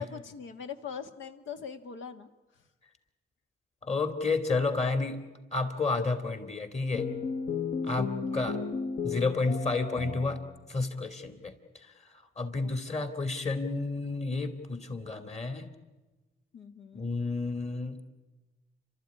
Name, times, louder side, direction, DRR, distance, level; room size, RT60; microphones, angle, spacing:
voice 1, 0.0-2.3 8.0-8.5 12.6-12.7 16.5-17.1, left 7 dB, 75° left, 7 dB, 1.7 m, -42 dB
voice 2, 3.8-5.2 5.5-7.1 7.8-8.6 9.0-10.4 10.7-11.5 12.4-15.7 16.9-18.0, left 3 dB, 35° left, 9 dB, 2.8 m, -31 dB
sound 1, 6.9-10.7, left 5 dB, 50° left, 1.2 m, -34 dB
29.0 x 13.0 x 9.8 m, 1.2 s
cardioid pair, 90°, 20 cm